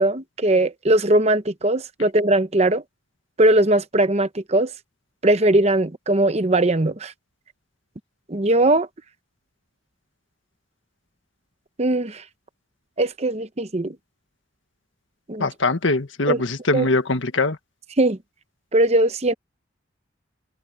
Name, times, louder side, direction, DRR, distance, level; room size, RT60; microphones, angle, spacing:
voice 1, 0.0-2.8 3.4-4.7 5.2-7.1 8.3-8.9 11.8-12.2 13.0-14.0 15.3-15.5 16.3-16.4 16.7-16.9 18.0-18.2 18.7-19.3, right 1 dB, 35° right, 0.9 m, -19 dB
voice 2, 15.4-17.6, left 3 dB, 75° left, 1.5 m, -22 dB
head